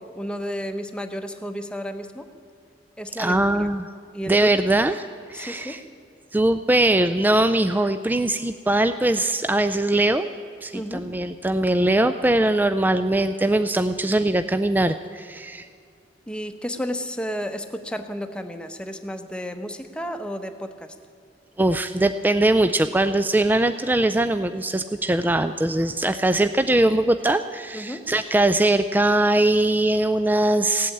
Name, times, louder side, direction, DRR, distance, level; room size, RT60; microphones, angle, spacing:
voice 1, 0.0-2.3 3.0-3.7 4.1-4.5 5.3-5.8 10.7-11.1 16.3-20.9 27.7-28.1, equal, 5° left, 7 dB, 0.8 m, -32 dB
voice 2, 3.2-3.9 4.3-5.0 5.3-5.8 6.3-10.3 10.6-15.7 21.6-30.9, right 1 dB, 10° right, 10 dB, 0.3 m, -21 dB
16.5 x 8.5 x 8.6 m, 2.4 s
head